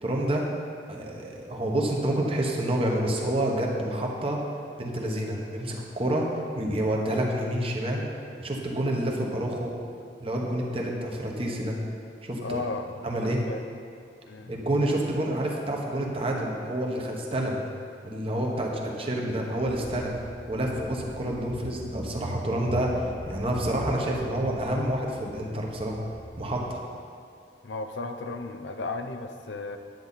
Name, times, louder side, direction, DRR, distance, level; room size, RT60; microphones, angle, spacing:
voice 1, 0.0-0.5 0.9-4.4 4.8-6.3 6.5-8.0 8.4-9.7 10.2-11.8 12.2-12.6 13.0-13.4 14.5-17.6 18.0-20.1 20.5-26.0 26.4-26.8, right 1 dB, 30° right, -1 dB, 1.2 m, -28 dB
voice 2, 12.4-12.9 13.2-13.6 14.3-14.5 27.6-29.8, left 3 dB, 80° left, 6 dB, 0.6 m, -34 dB
Car / Engine, 19.6-26.7, equal, 70° right, 1.6 m, -40 dB
10.5 x 8.8 x 4.1 m, 2.4 s
head